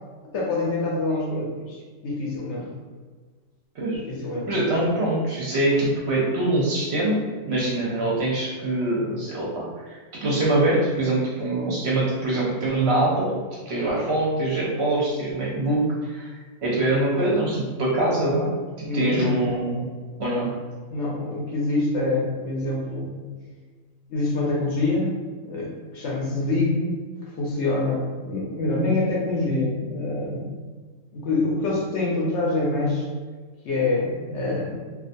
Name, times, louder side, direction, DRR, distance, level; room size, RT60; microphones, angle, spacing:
voice 1, 0.3-2.7 3.9-4.5 18.8-19.2 20.9-23.1 24.1-27.0 27.3-30.5 31.1-33.1 33.6-34.8, left 2 dB, 65° left, -3 dB, 0.8 m, -26 dB
voice 2, 4.4-13.3 13.7-16.3 16.6-18.5 18.9-19.9 20.2-20.5, right 2 dB, 60° right, -5 dB, 0.7 m, -24 dB
2.4 x 2.2 x 2.5 m, 1.4 s
omnidirectional pair, 1.4 m